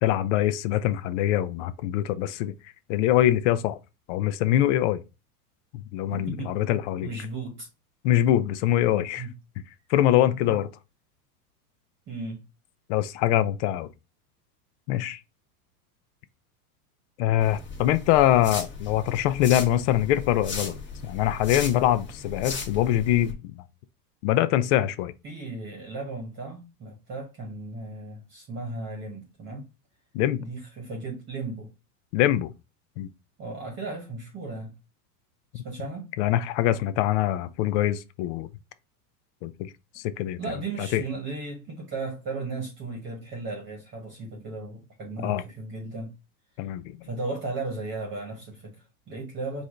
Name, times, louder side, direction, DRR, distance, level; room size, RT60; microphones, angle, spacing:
voice 1, 0.0-2.5 2.9-3.8 4.1-5.0 5.7-7.1 8.0-9.3 9.9-10.7 12.9-13.9 14.9-15.2 17.2-23.6 24.2-25.1 30.1-30.4 32.1-32.5 33.0-33.1 35.5-35.6 36.2-38.5 39.4-39.7 40.0-40.4 40.8-41.0 45.2-45.4 46.6-47.0, left 12 dB, 50° left, 0.5 m, -24 dB
voice 2, 6.1-6.6 7.0-7.7 9.2-9.3 10.4-10.5 12.1-12.4 25.2-29.7 30.4-31.7 33.4-34.8 35.5-36.1 40.4-46.1 47.0-49.6, right 3 dB, 25° right, 1.2 m, -35 dB
sound 1, 17.4-23.3, left 4 dB, 25° left, 1.5 m, -37 dB
4.8 x 2.7 x 3.7 m
supercardioid pair, 135°, 47 cm